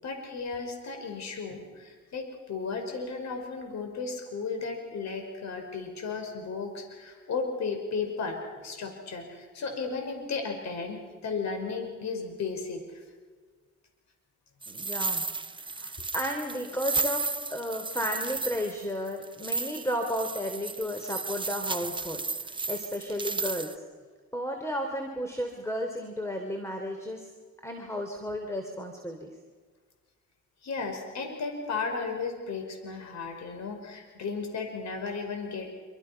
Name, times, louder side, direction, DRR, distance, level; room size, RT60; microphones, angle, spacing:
voice 1, 0.0-13.0 30.6-35.7, left 4 dB, 65° left, 4 dB, 5.6 m, -34 dB
sound 1, 14.6-23.8, right 3 dB, 15° right, 0.9 m, -34 dB
voice 2, 14.7-15.2 15.6-23.8 24.3-27.3 27.6-29.3, equal, 10° left, 4 dB, 3.3 m, -33 dB
26.5 x 25.5 x 6.0 m, 1.5 s
cardioid pair, 90°, 30 cm